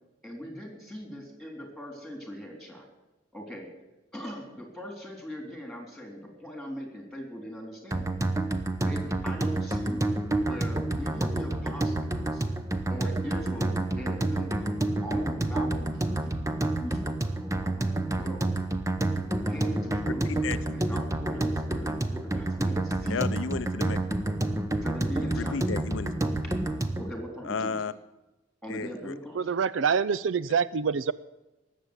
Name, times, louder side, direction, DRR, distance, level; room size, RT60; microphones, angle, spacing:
voice 1, 0.2-2.9 3.3-3.7 4.1-8.1 8.8-10.1 10.4-12.4 12.9-18.5 19.2-23.3 24.8-25.6 26.4-26.5 27.0-27.8 28.6-29.5, equal, ahead, 2 dB, 3.6 m, -40 dB
sound 1, 7.9-27.1, right 2 dB, 15° right, 0.9 m, -29 dB
voice 2, 23.1-24.0 25.2-26.1 27.4-27.9 28.7-29.1, left 5 dB, 70° left, 12 dB, 0.5 m, -33 dB
voice 3, 29.4-31.1, right 6 dB, 70° right, 17 dB, 0.4 m, -26 dB
19.5 x 7.5 x 8.1 m, 1.0 s
head